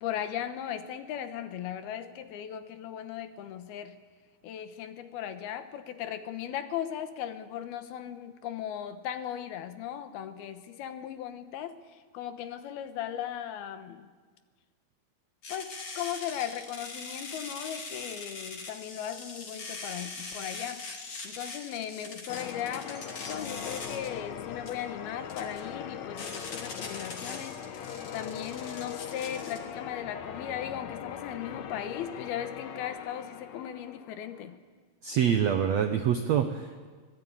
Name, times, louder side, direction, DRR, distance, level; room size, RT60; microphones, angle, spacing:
voice 1, 0.0-4.0 4.4-14.1 15.5-20.9 21.2-34.6, left 10 dB, 80° left, 9 dB, 3.1 m, -37 dB
sound 1, 15.4-29.6, left 3 dB, 40° left, 3.5 m, -42 dB
Church bell, 22.3-34.6, left 8 dB, 65° left, 1.9 m, -41 dB
voice 2, 35.0-36.9, right 8 dB, 75° right, 7 dB, 1.6 m, -26 dB
24.5 x 19.5 x 9.0 m, 1.5 s
omnidirectional pair, 4.4 m